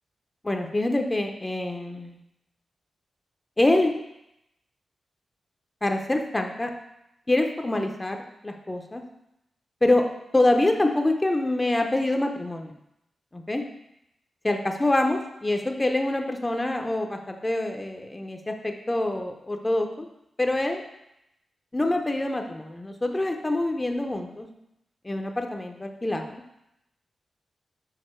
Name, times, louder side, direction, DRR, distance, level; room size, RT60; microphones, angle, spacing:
voice 1, 0.4-2.2 3.6-4.0 5.8-6.7 7.3-8.2 8.4-9.0 9.8-10.1 10.3-12.7 13.3-13.6 14.4-20.1 20.4-20.8 21.7-24.5 25.0-26.4, left 2 dB, 20° left, 4 dB, 0.6 m, -25 dB
6.5 x 4.5 x 4.4 m, 0.83 s
wide cardioid pair, 110°, 0 cm